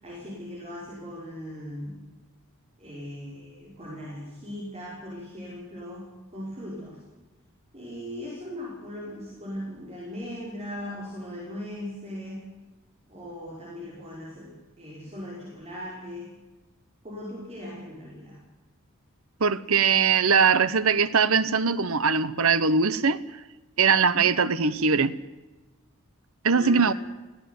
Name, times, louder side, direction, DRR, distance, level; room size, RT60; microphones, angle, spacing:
voice 1, 0.0-2.0 2.8-7.0 7.7-12.4 13.1-16.3 17.0-18.4 24.1-24.4 26.5-26.9, left 1 dB, 30° right, 5.6 m, -39 dB
voice 2, 19.4-23.2 23.8-25.1 26.4-26.9, right 5 dB, 65° right, 1.0 m, -21 dB
18.0 x 16.5 x 9.7 m
head